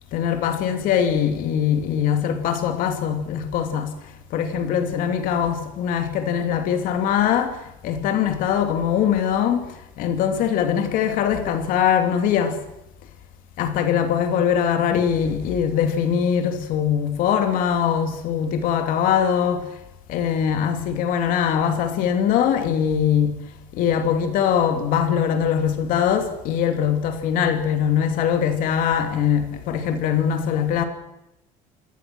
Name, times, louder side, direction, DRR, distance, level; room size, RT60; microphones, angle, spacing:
voice 1, 0.1-3.9 4.3-7.6 7.8-9.7 10.0-12.6 13.6-19.7 20.1-23.4 23.7-30.8, left 8 dB, 55° left, 2.9 m, -22 dB
27.0 x 18.5 x 6.3 m
cardioid pair, 175°, 17 cm